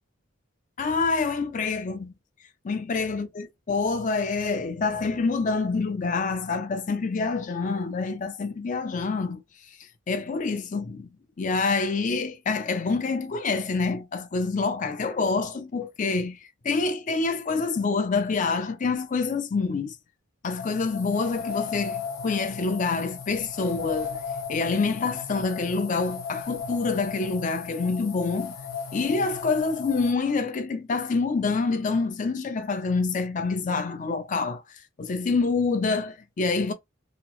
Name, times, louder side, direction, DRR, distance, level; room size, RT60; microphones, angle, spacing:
voice 1, 0.8-2.1 2.6-9.4 10.1-11.1 11.4-20.0 20.4-24.2 24.5-28.5 28.9-34.6 35.0-36.7, left 4 dB, 35° left, 0.4 m, -27 dB
sound 1, 20.6-30.1, left 6 dB, 85° left, 0.8 m, -36 dB
2.8 x 2.0 x 2.9 m
head